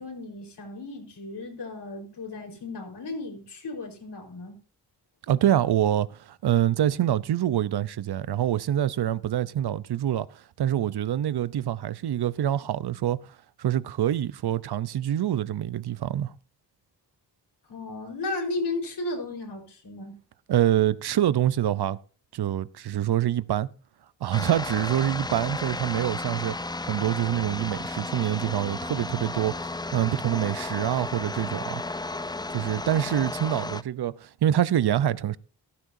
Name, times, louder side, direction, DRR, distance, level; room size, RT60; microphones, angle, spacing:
voice 1, 0.0-4.6 17.7-20.2, left 2 dB, 70° left, 4.5 m, -34 dB
voice 2, 5.3-13.2 13.6-16.3 20.5-22.0 22.3-23.7 24.2-26.6 26.8-31.8 32.5-35.4, right 11 dB, 65° right, 0.7 m, -26 dB
sound 1, 24.3-33.8, left 2 dB, 10° left, 0.5 m, -33 dB
15.0 x 12.5 x 2.7 m
cardioid pair, 60°, 42 cm